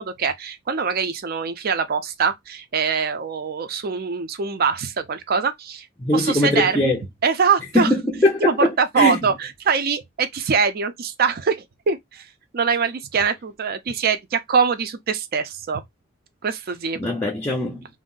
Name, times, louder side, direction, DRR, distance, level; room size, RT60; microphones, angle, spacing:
voice 1, 0.0-5.9 6.1-6.9 7.2-7.9 8.4-12.3 12.5-15.8 16.4-17.0, right 6 dB, 50° right, 0.5 m, -23 dB
voice 2, 6.0-7.0 7.7-8.7 9.0-9.2 17.0-17.9, left 1 dB, 10° left, 0.5 m, -20 dB
2.5 x 2.0 x 3.7 m
head